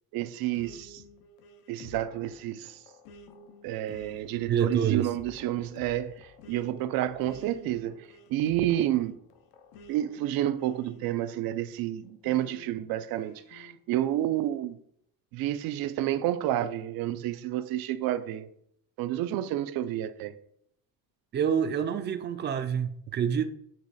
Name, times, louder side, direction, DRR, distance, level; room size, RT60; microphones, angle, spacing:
voice 1, 0.1-1.0 1.7-2.8 3.6-9.2 9.9-14.8 15.3-18.5 19.0-20.3, right 13 dB, 75° right, 0.6 m, -30 dB
sound 1, 0.5-11.6 12.2-13.8, left 3 dB, 85° left, 0.8 m, -51 dB
voice 2, 4.5-5.1 21.3-23.5, right 8 dB, 30° right, 0.4 m, -27 dB
8.9 x 3.1 x 4.1 m
cardioid pair, 160°, 36 cm